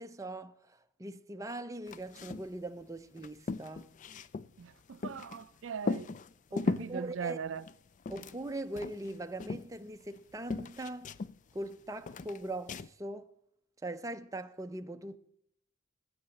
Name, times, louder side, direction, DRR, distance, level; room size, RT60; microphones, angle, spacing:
voice 1, 0.0-3.9 6.5-7.4 8.1-11.1 11.5-13.3 13.8-15.2, right 1 dB, 15° right, 0.6 m, -41 dB
sound 1, 1.9-2.5 2.8-2.9 3.2-5.4 5.8-7.0 7.5-8.5 8.8-10.2 10.5-11.7 12.1-12.9, left 3 dB, 40° left, 0.4 m, -37 dB
voice 2, 4.6-6.1 6.7-7.7, right 6 dB, 75° right, 0.4 m, -39 dB
9.5 x 8.8 x 7.6 m
head